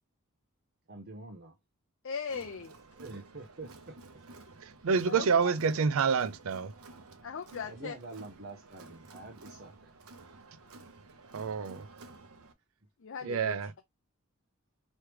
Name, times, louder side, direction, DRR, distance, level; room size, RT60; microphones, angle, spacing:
voice 1, 0.9-1.6 2.9-4.2 7.6-9.9, right 2 dB, 50° right, 0.9 m, -46 dB
voice 2, 2.0-2.7 4.9-5.5 7.2-7.9 13.0-13.7, left 6 dB, 60° left, 0.5 m, -39 dB
Crowd, 2.3-12.5, right 2 dB, 85° right, 0.9 m, -53 dB
voice 3, 4.6-6.7 11.3-11.9 13.2-13.7, right 5 dB, 70° right, 0.5 m, -28 dB
4.7 x 3.2 x 3.1 m
head